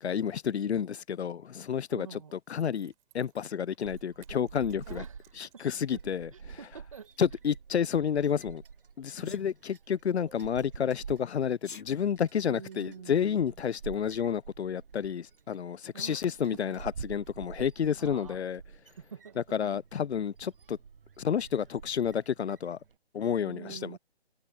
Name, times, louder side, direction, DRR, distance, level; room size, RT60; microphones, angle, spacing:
voice 1, 0.0-5.0 5.4-6.6 7.2-8.6 9.0-18.6 19.4-20.8 21.2-22.8 23.1-24.0, left 8 dB, 80° left, 0.6 m, -30 dB
Zipper (clothing), 1.4-6.0 6.3-6.4, right 21 dB, 10° right, 6.8 m, -66 dB
voice 2, 1.9-2.3 4.8-5.6 5.9-6.0 6.3-7.4 9.2-9.5 12.5-13.5 15.9-16.3 16.5-16.7 18.0-18.5 19.0-19.4 23.4-24.0, right 7 dB, 30° right, 1.8 m, -47 dB
sound 1, 3.8-23.0, right 6 dB, 55° right, 0.9 m, -48 dB
Sneeze, 9.2-9.5 11.5-11.9, left 5 dB, 50° left, 1.2 m, -45 dB
hypercardioid pair, 175°, 32 cm